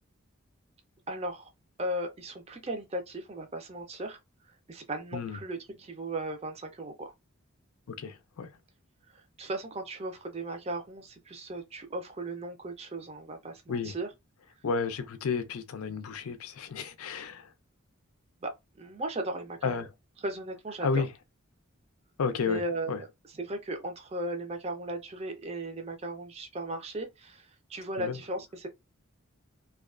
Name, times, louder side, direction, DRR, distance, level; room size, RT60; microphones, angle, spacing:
voice 1, 1.1-1.5 1.8-4.2 4.7-7.1 9.1-14.1 18.4-19.9 20.2-21.0 22.4-28.7, right 1 dB, 30° right, 0.5 m, -37 dB
voice 2, 8.0-8.5 13.7-13.9 14.6-17.4 19.6-19.9 20.8-21.1 22.2-22.6 22.9-23.0 28.0-28.2, left 5 dB, 90° left, 0.4 m, -31 dB
2.3 x 2.2 x 2.4 m
head